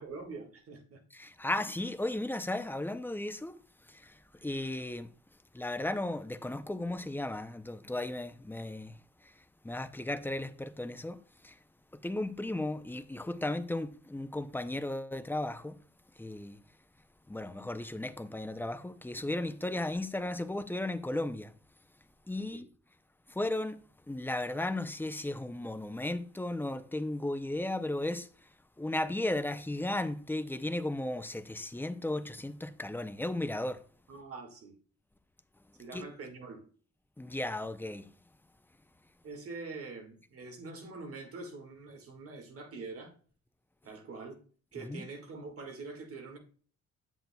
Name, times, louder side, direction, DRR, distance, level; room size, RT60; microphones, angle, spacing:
voice 1, 0.0-1.0 22.5-22.7 34.1-34.8 35.8-36.7 39.2-43.1 43.8-44.4 44.7-46.4, right 3 dB, 50° right, 1.8 m, -44 dB
voice 2, 1.1-3.6 3.8-5.1 5.5-11.6 11.9-15.8 16.2-16.6 17.3-21.5 22.3-22.7 23.3-28.5 28.8-33.8 35.9-36.0 37.2-38.1 44.8-45.1, left 1 dB, 5° left, 0.5 m, -35 dB
9.0 x 7.7 x 2.2 m
cardioid pair, 110°, 29 cm